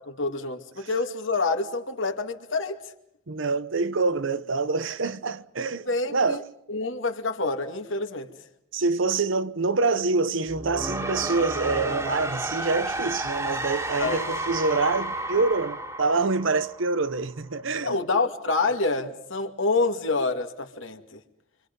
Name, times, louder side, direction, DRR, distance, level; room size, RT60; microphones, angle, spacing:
voice 1, 0.0-2.8 5.9-6.4 6.7-8.3 14.0-14.2 17.8-21.2, left 3 dB, 70° left, 2.3 m, -27 dB
voice 2, 3.3-6.4 8.7-18.0, right 3 dB, 70° right, 0.9 m, -26 dB
sound 1, 10.5-17.4, right 1 dB, 15° right, 2.1 m, -32 dB
28.0 x 25.5 x 5.4 m
head